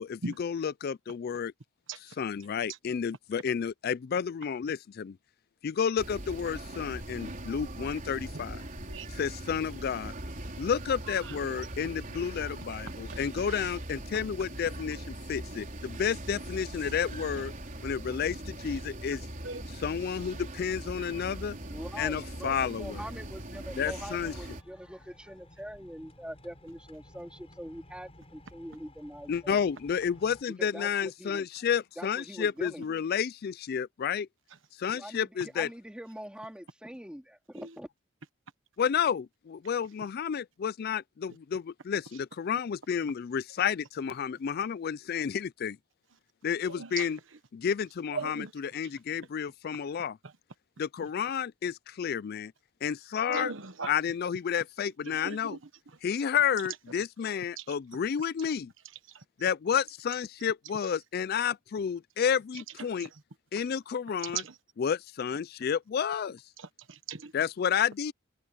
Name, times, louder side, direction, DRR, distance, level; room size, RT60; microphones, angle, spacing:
voice 1, 0.0-1.5 2.2-5.2 5.6-8.6 9.1-10.1 10.6-17.5 17.8-19.2 19.8-21.6 22.0-23.0 23.8-24.3 29.3-34.3 34.8-35.7 38.8-45.8 46.4-47.2 47.5-50.2 50.8-52.5 52.8-53.5 53.9-55.6 56.0-58.7 59.4-63.1 63.5-64.4 64.8-66.4 67.3-68.1, left 7 dB, 50° left, 0.3 m, -31 dB
sound 1, 6.0-24.6, right 1 dB, 40° right, 4.2 m, -41 dB
voice 2, 11.1-11.4 13.1-13.2 19.4-19.7 37.5-37.7 46.7-47.1 48.1-48.5 50.2-50.3 53.3-53.9 55.0-55.6 55.9-56.0 57.6-57.7 59.1-59.2 62.5-62.6 63.0-63.2 64.2-64.6 66.6-67.3, right 5 dB, 70° right, 1.3 m, -39 dB
voice 3, 21.7-29.6 30.6-31.5 32.0-33.1 34.9-37.9, equal, 5° right, 2.5 m, -43 dB
sound 2, 24.1-30.4, left 1 dB, 30° left, 5.8 m, -55 dB
head